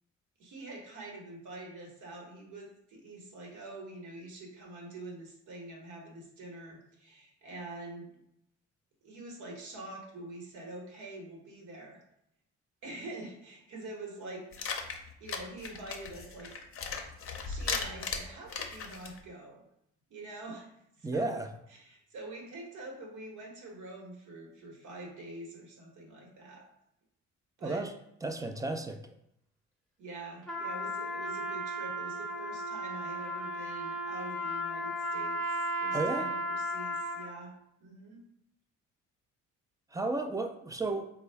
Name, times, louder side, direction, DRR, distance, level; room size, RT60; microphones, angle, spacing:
voice 1, 0.4-8.1 9.0-12.0 12.8-14.7 15.2-16.5 17.0-17.1 17.4-19.6 20.1-20.7 21.0-21.4 21.7-26.7 27.6-27.9 30.0-37.5 37.8-38.2, right 2 dB, 75° right, -1 dB, 1.1 m, -45 dB
sound 1, 14.5-19.2, left 5 dB, 45° left, 0.6 m, -37 dB
voice 2, 21.0-21.5 27.6-27.9 28.2-29.1 35.9-36.3 39.9-41.1, right 2 dB, 10° right, 6 dB, 0.3 m, -33 dB
Trumpet, 30.4-37.4, equal, 5° left, 0.7 m, -35 dB
4.1 x 2.2 x 3.3 m, 0.76 s
cardioid pair, 90°, 30 cm